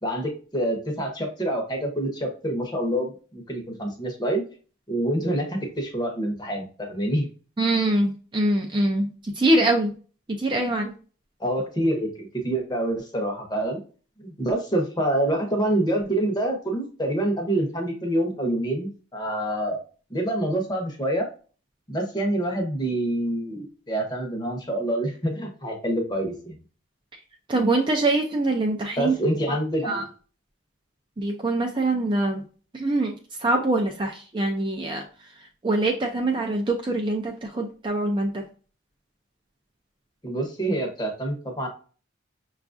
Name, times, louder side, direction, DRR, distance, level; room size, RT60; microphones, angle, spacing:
voice 1, 0.0-4.4 4.9-7.3 11.4-13.8 14.2-19.8 20.1-21.3 21.9-26.6 29.0-30.0 40.2-41.7, right 1 dB, 20° left, 2 dB, 0.8 m, -26 dB
voice 2, 7.6-9.9 10.4-10.9 27.5-29.1 29.9-30.0 31.2-32.4 32.7-33.1 33.4-35.0 35.6-38.4, right 2 dB, 25° right, 2 dB, 0.4 m, -24 dB
5.7 x 2.4 x 2.5 m, 0.38 s
head